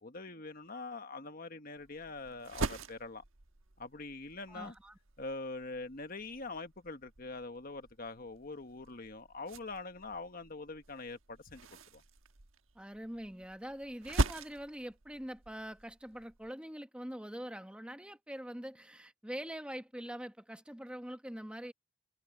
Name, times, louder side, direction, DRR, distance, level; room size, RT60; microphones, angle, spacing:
voice 1, 0.0-3.2 3.8-4.7 5.2-11.7 11.9-12.0, left 3 dB, 45° left, 1.4 m, -44 dB
sound 1, 1.8-16.5, right 2 dB, 85° right, 1.3 m, -42 dB
voice 2, 4.5-5.0 12.7-21.7, equal, 5° right, 1.0 m, -44 dB
head